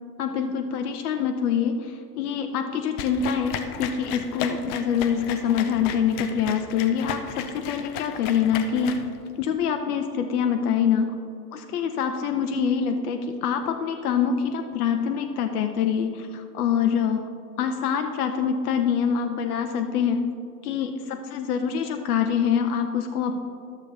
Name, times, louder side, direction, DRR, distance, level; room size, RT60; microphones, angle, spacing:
voice 1, 0.2-9.0 9.4-11.1 11.5-17.2 17.6-20.2 20.6-23.4, left 7 dB, 65° left, 6 dB, 0.7 m, -25 dB
sound 1, 3.0-9.5, left 8 dB, 25° left, 0.3 m, -35 dB
12.0 x 7.0 x 3.3 m, 2.5 s
figure-of-eight pair, 90°, 48 cm